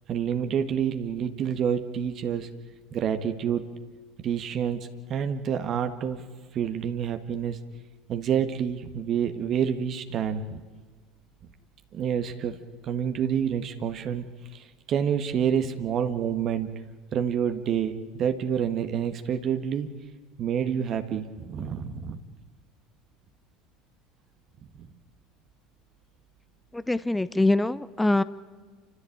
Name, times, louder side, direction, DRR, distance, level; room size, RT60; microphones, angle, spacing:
voice 1, 0.1-2.5 2.9-3.6 4.2-6.2 6.5-7.6 8.1-10.6 11.9-14.3 14.5-16.7 17.1-19.9 20.4-22.2 24.8-24.9, right 8 dB, 50° right, 7 dB, 1.6 m, -28 dB
voice 2, 26.7-28.2, left 2 dB, 10° left, 17 dB, 0.7 m, -24 dB
28.5 x 14.5 x 8.7 m, 1.5 s
hypercardioid pair, 75°, 0 cm